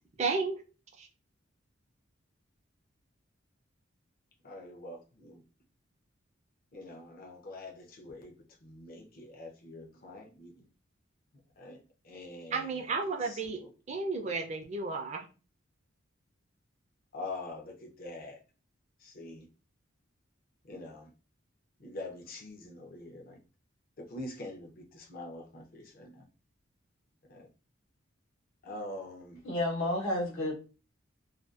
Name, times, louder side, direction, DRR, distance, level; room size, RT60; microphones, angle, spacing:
voice 1, 0.2-0.5 1.0-1.1 12.5-13.6 13.9-15.2, right 4 dB, 35° right, 0.4 m, -32 dB
voice 2, 4.4-5.4 6.7-10.7 11.6-14.0 17.1-18.4 19.0-19.5 20.6-21.1 21.8-23.4 24.0-26.3 27.3-27.5 28.6-29.4, left 2 dB, 45° left, 0.5 m, -45 dB
voice 3, 29.4-30.5, left 1 dB, 80° left, 1.0 m, -30 dB
2.5 x 2.2 x 2.3 m
head